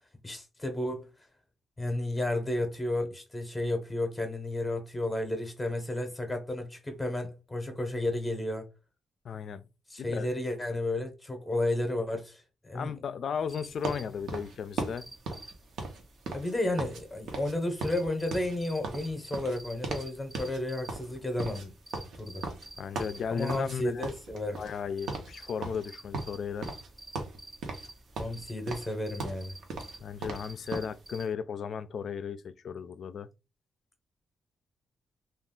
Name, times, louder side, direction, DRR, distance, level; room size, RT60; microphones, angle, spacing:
voice 1, 0.2-1.1 1.8-8.7 9.9-12.9 16.3-21.7 22.2-22.4 23.3-24.6 28.2-29.6, left 1 dB, 20° left, 0.7 m, -32 dB
voice 2, 9.2-9.7 10.0-10.3 12.7-15.1 22.8-24.1 24.6-26.7 30.0-33.3, left 7 dB, 60° left, 0.3 m, -35 dB
sound 1, 13.3-31.3, right 2 dB, 10° right, 0.4 m, -51 dB
sound 2, 13.8-17.0 17.3-17.5 17.8-20.1 20.3-20.6 20.9-23.8 24.0-24.8 25.1-25.3 25.6-26.9 27.1-27.9 28.2-30.9, right 3 dB, 75° right, 0.7 m, -37 dB
2.4 x 2.3 x 3.6 m
cardioid pair, 85°, 0 cm